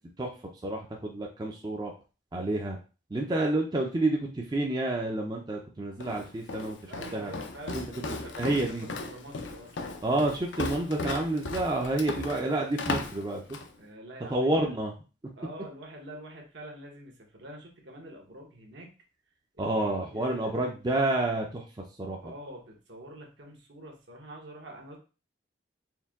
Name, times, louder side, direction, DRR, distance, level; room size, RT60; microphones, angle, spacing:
voice 1, 0.6-1.9 2.3-2.8 3.1-7.3 7.7-7.8 8.4-8.9 10.0-13.6 14.3-14.9 19.6-21.7 22.0-22.3, right 2 dB, 20° right, 0 dB, 0.4 m, -29 dB
Walk footsteps, 6.0-13.7, left 3 dB, 75° left, 0.5 m, -36 dB
voice 2, 6.9-10.0 13.8-14.7 15.4-18.9 19.5-20.5 22.2-25.0, right 1 dB, 70° right, 0 dB, 1.1 m, -46 dB
4.5 x 2.2 x 3.5 m, 0.34 s
head